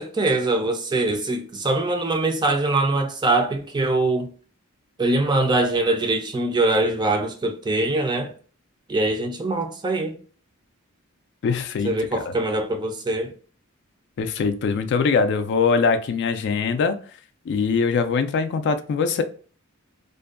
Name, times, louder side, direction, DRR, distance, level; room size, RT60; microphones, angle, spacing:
voice 1, 0.0-4.3 5.0-8.3 8.9-10.2 11.8-13.3, right 2 dB, 20° right, 0.4 m, -23 dB
voice 2, 11.4-12.2 14.2-17.0 17.5-19.2, left 5 dB, 55° left, 0.3 m, -22 dB
2.5 x 2.2 x 2.3 m
head